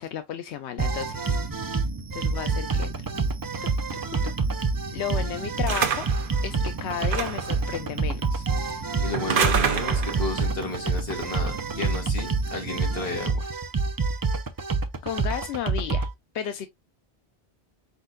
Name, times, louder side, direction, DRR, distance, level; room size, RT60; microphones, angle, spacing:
voice 1, 0.0-1.4 2.1-2.9 4.9-6.1 6.4-8.5 15.0-16.1 16.3-16.7, left 9 dB, 90° left, 0.9 m, -33 dB
sound 1, 0.8-16.1, right 4 dB, 35° right, 0.3 m, -27 dB
sound 2, 5.7-6.3 7.0-7.5 9.1-10.3, right 7 dB, 55° right, 0.9 m, -26 dB
voice 2, 8.6-13.5, left 3 dB, 60° left, 1.8 m, -33 dB
4.5 x 4.1 x 2.5 m
omnidirectional pair, 1.1 m